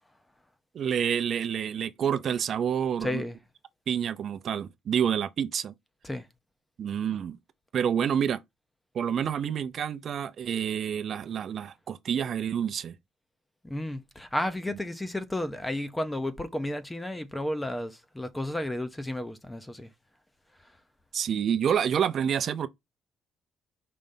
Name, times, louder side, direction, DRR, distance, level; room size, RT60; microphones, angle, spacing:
voice 1, 0.7-3.2 3.9-5.7 6.8-7.4 7.7-8.4 8.9-12.9 21.1-22.7, right 8 dB, 45° right, 0.6 m, -28 dB
voice 2, 3.0-3.4 6.0-6.2 13.6-19.9, left 1 dB, 10° left, 0.7 m, -32 dB
5.1 x 3.3 x 5.5 m
cardioid pair, 155°, 0 cm